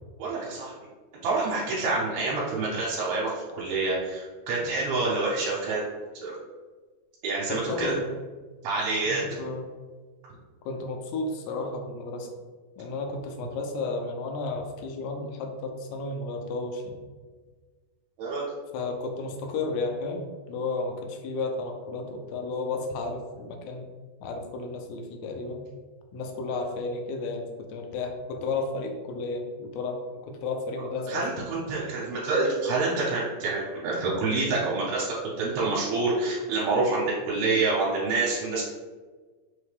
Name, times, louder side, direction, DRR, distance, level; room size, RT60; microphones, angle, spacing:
voice 1, 0.2-0.7 1.2-5.8 6.2-6.4 7.2-7.9 8.6-9.2 18.2-18.5 31.1-38.6, right 3 dB, 80° right, -6 dB, 2.6 m, -27 dB
voice 2, 2.2-2.5 7.5-8.0 9.1-9.7 10.6-12.3 12.8-17.0 18.7-23.9 24.2-25.6 26.1-27.4 27.7-31.3, left 3 dB, 90° left, 3 dB, 2.7 m, -33 dB
6.1 x 2.2 x 3.2 m, 1.4 s
omnidirectional pair, 4.7 m